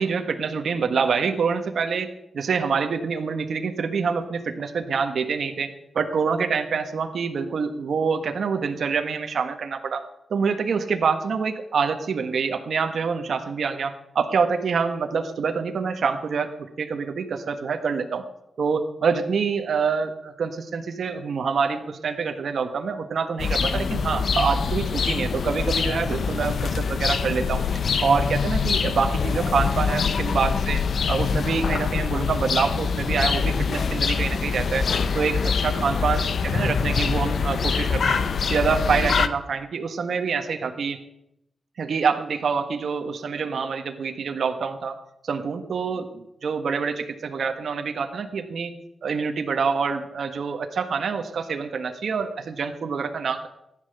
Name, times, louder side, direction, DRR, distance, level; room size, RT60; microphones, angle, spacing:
voice 1, 0.0-5.7 5.9-10.0 10.3-18.2 18.6-27.6 28.0-30.8 31.1-34.9 35.1-38.2 38.5-41.0 41.8-45.0 45.2-48.7 49.0-53.5, right 5 dB, 70° right, 6 dB, 1.4 m, -26 dB
sound 1, 23.4-39.3, left 5 dB, 65° left, 0.9 m, -24 dB
15.5 x 10.5 x 6.8 m, 0.81 s
wide cardioid pair, 115°, 0 cm